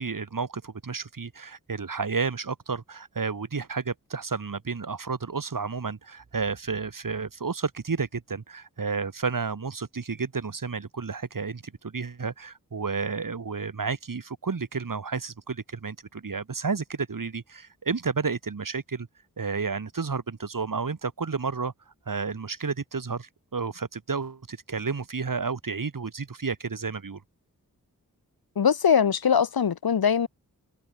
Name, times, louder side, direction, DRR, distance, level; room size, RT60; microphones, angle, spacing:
voice 1, 0.0-19.1 19.4-21.7 22.1-27.2, right 5 dB, 65° right, 7.7 m, -31 dB
voice 2, 28.6-30.3, left 7 dB, 90° left, 2.2 m, -22 dB
wide cardioid pair, 70°, 35 cm